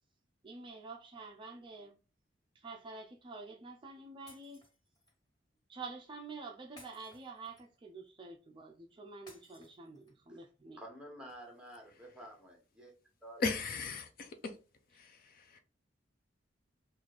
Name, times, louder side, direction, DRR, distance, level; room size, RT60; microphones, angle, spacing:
voice 1, 0.4-2.0 2.5-4.6 5.7-10.8, right 3 dB, 25° right, 0.4 m, -48 dB
Shatter, 4.3-5.2 6.8-7.9 9.3-10.3, left 1 dB, 25° left, 2.0 m, -59 dB
voice 2, 10.8-12.9 13.2-13.5, right 1 dB, 5° right, 1.0 m, -50 dB
voice 3, 13.4-14.5 14.9-15.6, left 4 dB, 50° left, 0.5 m, -37 dB
3.1 x 2.5 x 3.8 m
head